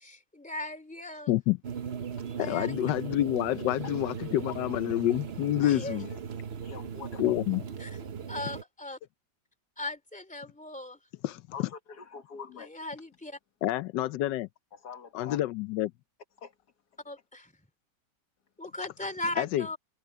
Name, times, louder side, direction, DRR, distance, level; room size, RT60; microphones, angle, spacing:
voice 1, 0.0-1.3 2.4-2.8 5.6-6.0 7.8-8.0 8.3-9.0 9.8-11.0 12.6-13.4 17.0-17.5 18.6-19.8, left 1 dB, 5° left, 2.5 m, -38 dB
sound 1, 1.6-8.6, right 7 dB, 45° right, 1.0 m, -38 dB
voice 2, 2.4-6.1 7.2-7.6 11.2-11.4 13.6-14.5 15.1-15.9 19.4-19.7, left 14 dB, 90° left, 1.3 m, -28 dB
voice 3, 6.6-7.2 11.5-12.7 14.7-15.4 16.4-16.5, left 6 dB, 65° left, 2.0 m, -44 dB
omnidirectional pair, 1.8 m